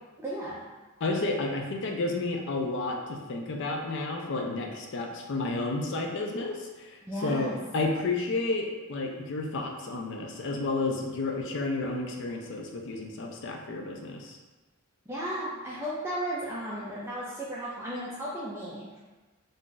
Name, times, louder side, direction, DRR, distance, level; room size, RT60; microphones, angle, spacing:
voice 1, 0.2-0.6 7.0-7.6 15.1-18.9, right 1 dB, 10° right, -8 dB, 0.4 m, -34 dB
voice 2, 1.0-14.4, left 2 dB, 60° left, 2 dB, 0.4 m, -31 dB
2.6 x 2.3 x 3.7 m, 1.2 s
head